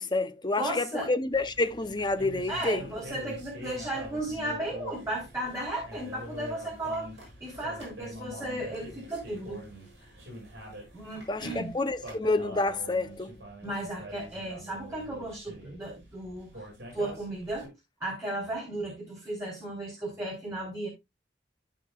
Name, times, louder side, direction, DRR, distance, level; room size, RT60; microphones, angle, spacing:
voice 1, 0.0-2.9 11.3-13.4, left 2 dB, 25° left, 0.6 m, -29 dB
voice 2, 0.6-1.1 2.5-7.1 7.4-9.6 10.9-11.7 13.6-16.5 16.9-17.7 18.0-20.9, right 1 dB, 15° right, 3.5 m, -35 dB
sound 1, 1.3-17.7, equal, 65° right, 6.6 m, -45 dB
15.0 x 5.2 x 2.4 m
head